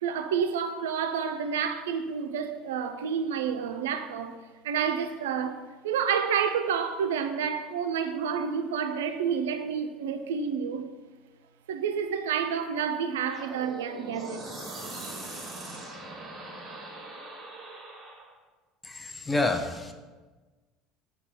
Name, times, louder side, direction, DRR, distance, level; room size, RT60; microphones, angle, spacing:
voice 1, 0.0-4.3 4.6-10.8 11.7-14.4, right 7 dB, 85° right, 0.3 m, -29 dB
sound 1, 13.3-18.3, right 2 dB, 30° right, 1.3 m, -41 dB
voice 2, 18.8-19.9, left 2 dB, 15° left, 0.5 m, -28 dB
5.1 x 2.3 x 4.4 m
hypercardioid pair, 80°, 0 cm